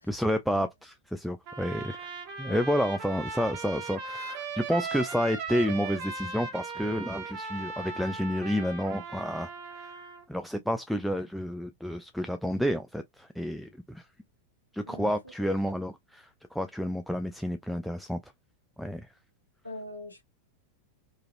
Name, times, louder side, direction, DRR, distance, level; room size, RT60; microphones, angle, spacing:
voice 1, 0.1-2.1 2.4-9.9 10.3-14.1 14.7-18.2 18.8-19.1, equal, ahead, 0.3 m, -30 dB
Trumpet, 1.5-10.2, right 4 dB, 45° right, 0.9 m, -38 dB
voice 2, 19.6-20.2, left 1 dB, 80° left, 0.7 m, -42 dB
3.1 x 2.4 x 2.5 m
figure-of-eight pair, 90°, 0 cm